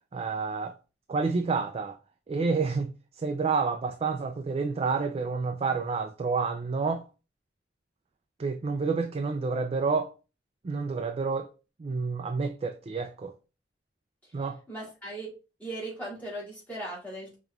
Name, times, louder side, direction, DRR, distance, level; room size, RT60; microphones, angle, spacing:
voice 1, 0.1-0.7 1.1-2.0 2.3-2.9 3.2-7.1 8.4-10.1 10.6-11.5 11.8-13.3 14.3-14.6, right 4 dB, 35° right, 0.3 m, -29 dB
voice 2, 14.7-15.3 15.6-17.4, right 1 dB, 10° left, 1.9 m, -38 dB
5.1 x 3.0 x 2.3 m
head